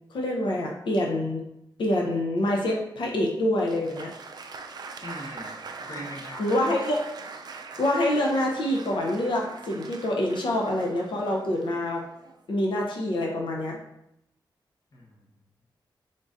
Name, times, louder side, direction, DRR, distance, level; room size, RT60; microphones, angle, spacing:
voice 1, 0.1-1.4 1.8-4.1 6.4-7.0 7.8-12.0 12.5-13.8, left 1 dB, 80° left, -1 dB, 0.7 m, -26 dB
Applause, 3.6-12.5, right 4 dB, 55° right, 0.4 m, -42 dB
voice 2, 5.0-6.6 14.9-15.2, left 1 dB, 45° left, -2 dB, 0.9 m, -40 dB
3.9 x 3.7 x 2.5 m, 0.79 s
wide cardioid pair, 125°, 8 cm